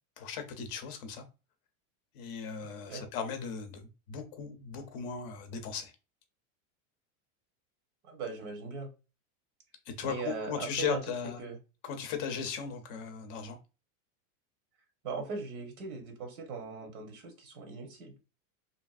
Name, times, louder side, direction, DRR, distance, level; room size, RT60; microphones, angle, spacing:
voice 1, 0.2-1.2 2.1-5.9 9.9-11.4 11.8-13.6, left 7 dB, 40° left, 0.5 m, -37 dB
voice 2, 8.0-8.9 10.0-11.0 11.4-11.6 15.0-18.1, right 4 dB, 90° right, 1.1 m, -39 dB
2.8 x 2.4 x 2.3 m
supercardioid pair, 155°, 42 cm